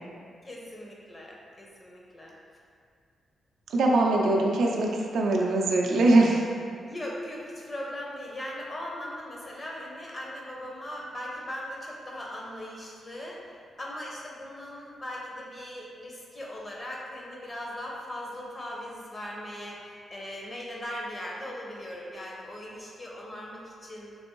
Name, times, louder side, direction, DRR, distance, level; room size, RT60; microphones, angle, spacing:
voice 1, 0.4-2.3 6.8-24.2, left 1 dB, 30° left, -3 dB, 0.6 m, -39 dB
voice 2, 3.7-6.5, right 2 dB, 85° right, -1 dB, 0.4 m, -22 dB
3.3 x 2.6 x 3.0 m, 2.2 s
cardioid pair, 95°, 0 cm